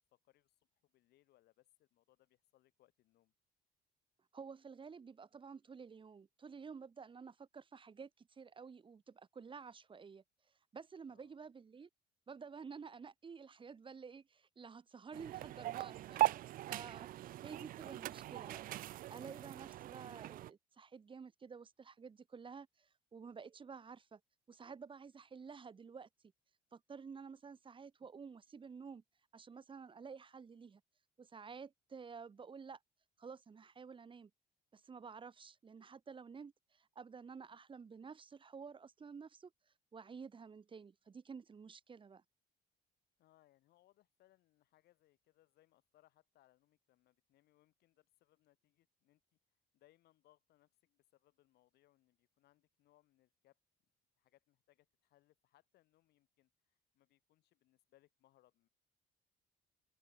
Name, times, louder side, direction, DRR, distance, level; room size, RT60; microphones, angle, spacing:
voice 1, 0.0-3.3 11.1-11.4 43.2-49.2 49.7-53.6 54.2-58.7, left 15 dB, 75° left, 4.0 m, -73 dB
voice 2, 4.3-10.2 10.7-11.9 12.3-16.3 16.7-18.7 19.1-24.2 24.5-26.1 26.7-29.0 29.3-30.8 31.2-32.8 33.2-34.3 34.7-39.5 39.9-42.2, right 5 dB, 30° right, 1.8 m, -52 dB
sound 1, 15.1-20.5, right 14 dB, 55° right, 0.4 m, -40 dB
cardioid pair, 110°, 17 cm